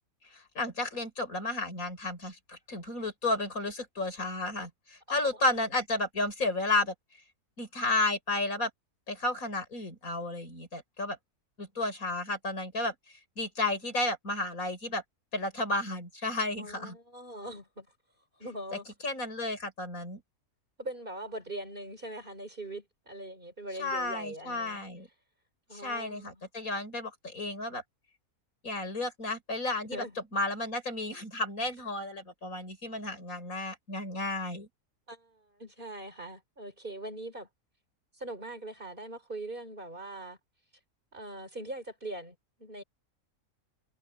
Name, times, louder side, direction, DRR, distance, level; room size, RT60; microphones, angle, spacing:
voice 1, 0.3-6.9 7.6-8.7 9.1-11.2 11.6-15.0 15.3-17.0 18.7-20.2 23.8-25.1 25.7-27.8 28.6-30.0 30.3-34.7, left 2 dB, 65° left, 5.8 m, -32 dB
voice 2, 5.2-5.6 16.5-17.9 18.4-18.8 20.8-24.8 25.7-26.4 29.9-30.2 35.1-37.5 38.1-40.4 41.1-42.8, right 1 dB, 35° right, 3.4 m, -41 dB
omnidirectional pair, 1.6 m